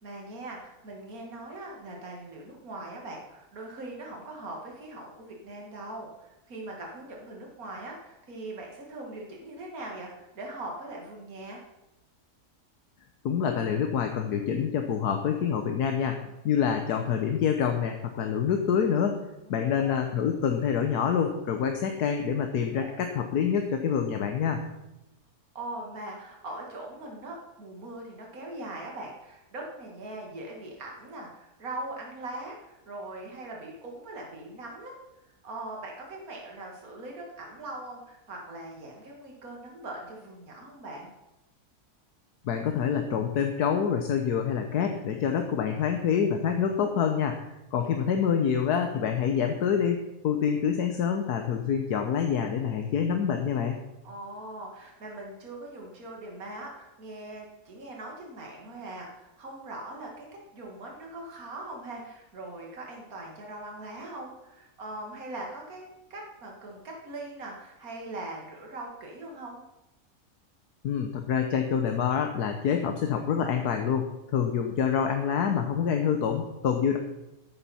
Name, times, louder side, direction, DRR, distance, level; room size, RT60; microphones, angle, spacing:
voice 1, 0.0-11.6 19.5-20.0 22.7-23.0 25.5-35.0 35.4-41.1 47.8-47.9 54.0-60.3 60.5-65.8 66.1-69.6, right 2 dB, 65° right, -1 dB, 2.5 m, -41 dB
voice 2, 13.2-16.2 16.4-19.2 19.5-24.6 42.4-47.4 47.7-53.8 70.8-77.0, left 7 dB, 85° left, 5 dB, 1.5 m, -26 dB
13.5 x 11.0 x 4.3 m, 0.95 s
omnidirectional pair, 1.6 m